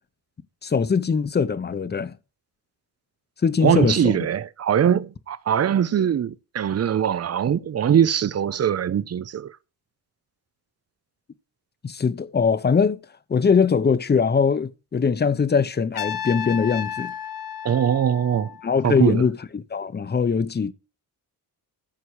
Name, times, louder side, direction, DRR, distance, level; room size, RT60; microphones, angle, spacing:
voice 1, 0.6-2.1 3.4-4.2 11.8-13.0 13.3-17.1 18.6-20.7, left 5 dB, 25° left, 0.8 m, -21 dB
voice 2, 3.6-9.5 17.6-18.5 18.8-19.3, right 9 dB, 40° right, 0.6 m, -22 dB
Trumpet, 15.9-18.9, left 9 dB, 60° left, 1.2 m, -33 dB
14.5 x 6.8 x 4.7 m
cardioid pair, 125°, 40 cm